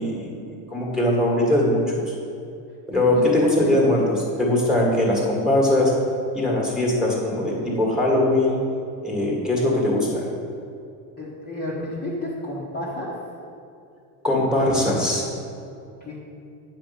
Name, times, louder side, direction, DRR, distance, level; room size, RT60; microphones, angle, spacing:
voice 1, 0.0-2.1 2.9-4.0 4.4-5.9 6.3-8.6 9.0-10.3 14.2-15.2, left 1 dB, ahead, -3 dB, 1.9 m, -21 dB
voice 2, 2.9-3.8 11.2-13.1 16.0-16.2, left 1 dB, 20° left, -7 dB, 1.4 m, -31 dB
9.9 x 5.1 x 7.1 m, 2.6 s
cardioid pair, 170°, 48 cm